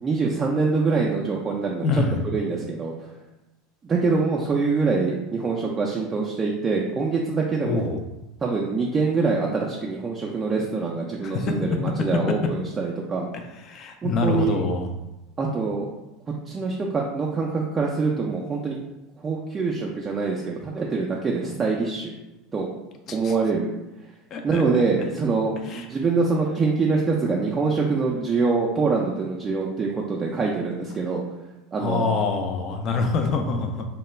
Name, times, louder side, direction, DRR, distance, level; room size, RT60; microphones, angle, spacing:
voice 1, 0.0-2.0 2.3-2.9 3.8-7.9 8.4-13.3 14.0-14.6 15.4-15.9 16.5-18.8 19.2-22.1 22.5-22.7 23.1-23.7 24.4-31.2 31.7-32.1, right 4 dB, 25° right, -2 dB, 0.4 m, -24 dB
voice 2, 1.8-2.2 7.6-8.0 11.2-11.5 13.5-14.9 23.1-23.4 24.3-24.6 25.6-25.9 31.8-33.9, left 4 dB, 45° left, 4 dB, 0.4 m, -25 dB
2.2 x 2.2 x 3.0 m, 1.0 s
hypercardioid pair, 80°, 0 cm